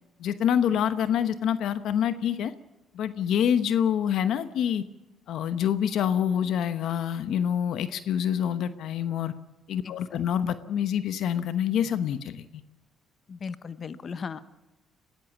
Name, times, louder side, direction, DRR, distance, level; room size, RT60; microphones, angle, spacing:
voice 1, 0.2-2.5 2.9-4.8 5.3-9.3 9.7-12.5, left 9 dB, 70° left, 11 dB, 1.0 m, -26 dB
voice 2, 13.3-14.4, left 5 dB, 45° left, 12 dB, 1.0 m, -36 dB
22.5 x 16.0 x 7.2 m, 0.98 s
cardioid pair, 85°, 0 cm